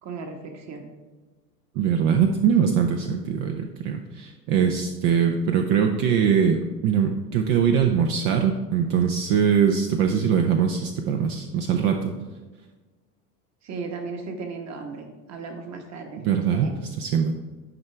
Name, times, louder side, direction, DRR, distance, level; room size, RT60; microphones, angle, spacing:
voice 1, 0.0-0.9 13.6-16.2 16.5-16.8, right 4 dB, 35° right, 4 dB, 1.5 m, -36 dB
voice 2, 1.8-12.2 16.2-16.7 17.0-17.3, right 7 dB, 55° right, 4 dB, 0.8 m, -22 dB
11.0 x 4.6 x 3.3 m, 1.3 s
hypercardioid pair, 90°, 47 cm